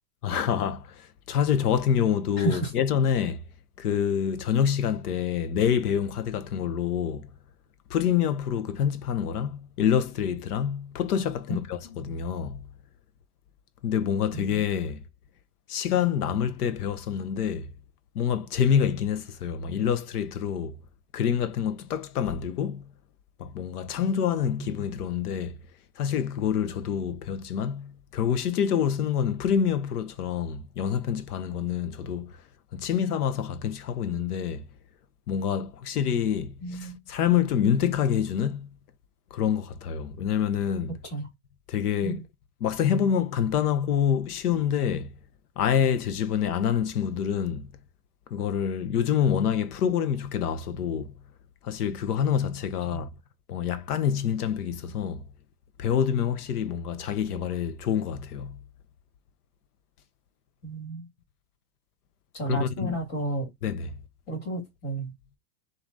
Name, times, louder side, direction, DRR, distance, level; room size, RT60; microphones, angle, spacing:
voice 1, 0.2-3.4 3.8-7.3 7.9-12.6 13.8-15.0 15.7-17.7 18.1-20.8 21.1-22.8 23.4-25.5 26.0-32.3 32.7-34.7 35.3-38.7 39.3-41.0 41.7-42.2 42.6-45.1 45.6-47.7 48.3-51.1 51.6-53.1 53.5-55.2 55.8-58.6 62.5-63.0 63.6-63.9, left 8 dB, 90° left, 0.7 m, -27 dB
voice 2, 2.4-2.7 11.5-12.0 14.3-14.4 24.6-24.7 36.6-37.0 41.1-41.3 42.0-42.2 52.9-53.0 60.6-61.1 62.3-63.5 64.3-65.1, right 1 dB, 45° left, 2.1 m, -32 dB
6.9 x 2.6 x 2.6 m
hypercardioid pair, 120°, 44 cm